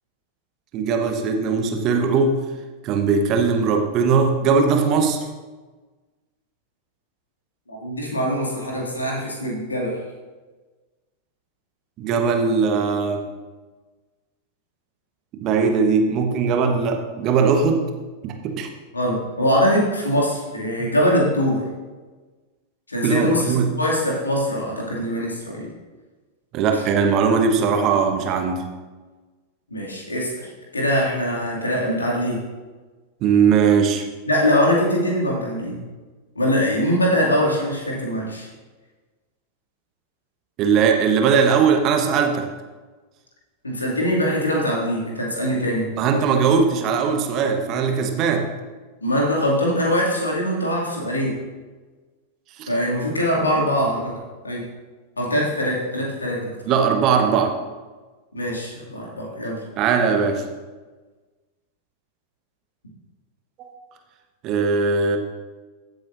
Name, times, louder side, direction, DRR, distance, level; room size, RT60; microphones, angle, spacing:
voice 1, 0.7-2.4 2.8-5.2 12.0-13.2 15.3-17.9 18.2-18.7 20.8-20.9 23.0-23.7 26.5-28.7 33.2-34.0 40.6-42.5 46.0-48.5 52.6-52.7 56.6-57.5 59.8-60.4 63.6-63.7 64.4-65.2, right 5 dB, 35° right, 5 dB, 1.1 m, -19 dB
voice 2, 7.7-10.0 18.9-21.6 22.9-25.7 26.7-26.8 29.7-32.4 34.2-35.8 36.4-38.5 43.6-45.9 49.0-51.4 52.7-54.2 54.4-54.6 55.2-56.5 58.3-59.6, equal, 80° left, -2 dB, 2.4 m, -22 dB
15.5 x 7.9 x 2.6 m, 1.3 s
figure-of-eight pair, 90°, 0 cm